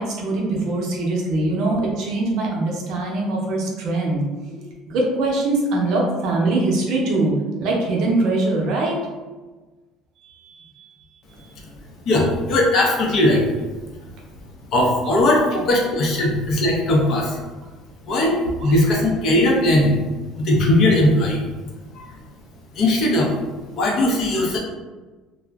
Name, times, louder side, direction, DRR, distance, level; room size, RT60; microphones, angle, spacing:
voice 1, 0.0-7.3 7.6-9.0 10.2-10.8 11.3-11.5 18.6-18.7, right 2 dB, 50° right, -2 dB, 0.6 m, -23 dB
voice 2, 12.0-13.5 14.7-17.4 18.1-20.0 20.3-21.4 21.9-22.1 22.7-23.3 23.7-24.6, left 1 dB, 40° left, -1 dB, 0.5 m, -19 dB
2.4 x 2.0 x 3.4 m, 1.3 s
cardioid pair, 175°, 0 cm